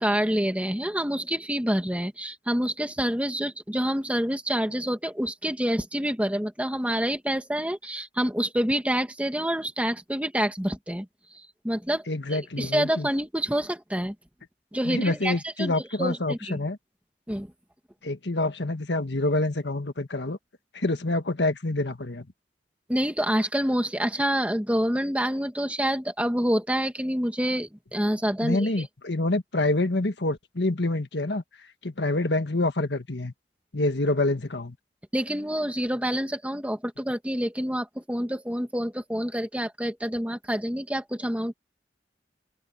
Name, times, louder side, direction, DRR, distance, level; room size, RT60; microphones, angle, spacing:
voice 1, 0.0-11.1 11.3-12.0 12.3-14.1 14.7-15.7 16.0-16.6 17.3-17.5 22.9-28.9 35.1-41.5, equal, 10° right, 2.1 m, -27 dB
voice 2, 12.1-13.1 14.8-16.8 18.0-20.4 20.7-22.3 28.4-31.4 31.8-33.3 33.7-34.7, left 2 dB, 75° left, 1.6 m, -27 dB
open air
head